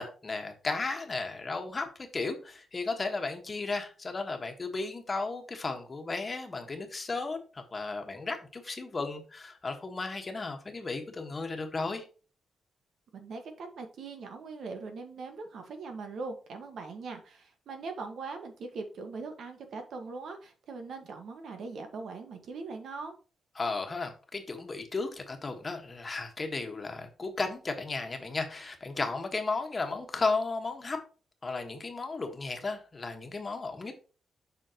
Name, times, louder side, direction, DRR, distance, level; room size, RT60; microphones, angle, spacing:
voice 1, 0.0-12.0 23.5-31.0 31.4-33.9, left 3 dB, 25° left, 1.5 m, -34 dB
voice 2, 13.1-23.1, right 4 dB, 70° right, 1.6 m, -41 dB
7.7 x 5.8 x 3.0 m
wide cardioid pair, 135°, 0 cm